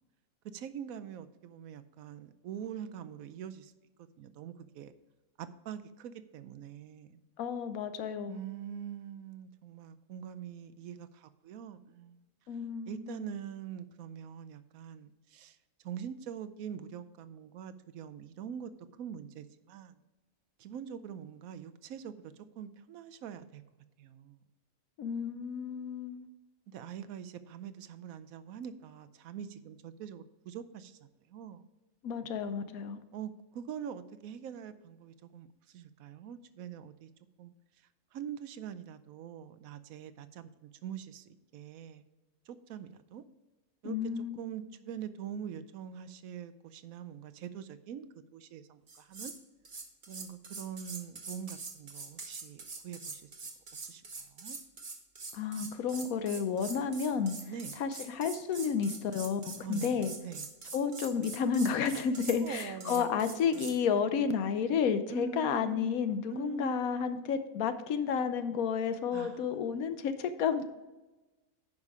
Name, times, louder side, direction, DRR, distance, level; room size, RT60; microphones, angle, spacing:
voice 1, 0.4-3.7 4.0-4.9 5.4-7.2 8.3-12.2 12.9-15.6 15.8-18.7 19.0-20.0 20.6-23.6 24.0-24.4 26.7-31.6 33.1-37.1 37.4-37.5 38.1-42.0 42.5-43.2 43.8-49.3 50.1-53.3 53.7-54.6 57.5-57.7 59.6-60.5 62.4-63.7 65.1-67.0 69.1-69.6, right 8 dB, 80° right, 11 dB, 1.1 m, -44 dB
voice 2, 7.4-8.4 12.5-13.3 25.0-26.3 32.0-33.0 43.8-44.4 55.3-57.4 57.8-60.1 60.7-70.6, left 6 dB, 80° left, 10 dB, 1.2 m, -31 dB
sound 1, 48.9-49.4 49.6-63.8, right 4 dB, 40° right, 1.1 m, -44 dB
9.8 x 5.4 x 4.8 m, 1.1 s
omnidirectional pair, 1.5 m